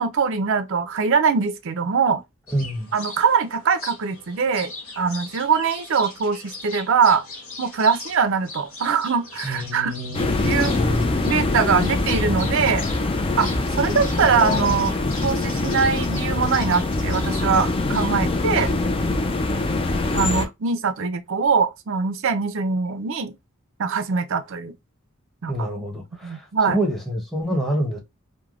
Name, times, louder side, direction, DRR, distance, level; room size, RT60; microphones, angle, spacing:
voice 1, 0.0-2.2 2.9-7.2 7.6-9.9 10.4-10.7 11.2-12.9 13.4-14.9 15.2-18.7 20.1-23.3 23.8-24.7 25.4-25.5 26.2-26.8, right 5 dB, 60° right, 0.5 m, -22 dB
sound 1, 2.5-18.7, left 2 dB, 70° left, 1.4 m, -40 dB
voice 2, 2.5-2.9 9.4-11.1 25.5-28.0, equal, ahead, 0.8 m, -27 dB
sound 2, 10.1-20.5, left 2 dB, 25° left, 0.4 m, -23 dB
3.3 x 2.1 x 2.3 m
head